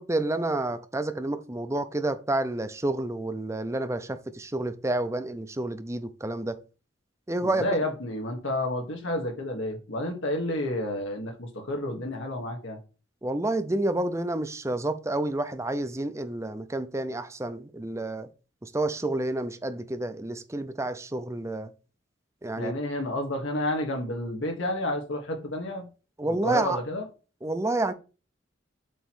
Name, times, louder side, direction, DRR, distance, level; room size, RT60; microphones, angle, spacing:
voice 1, 0.0-6.6 7.3-7.7 13.2-18.3 18.6-21.7 22.4-22.7 26.2-26.8 27.4-27.9, right 2 dB, 15° right, 0.6 m, -29 dB
voice 2, 7.4-12.8 22.6-25.9 26.4-27.0, left 1 dB, 80° left, 1.6 m, -30 dB
8.0 x 3.1 x 6.0 m
head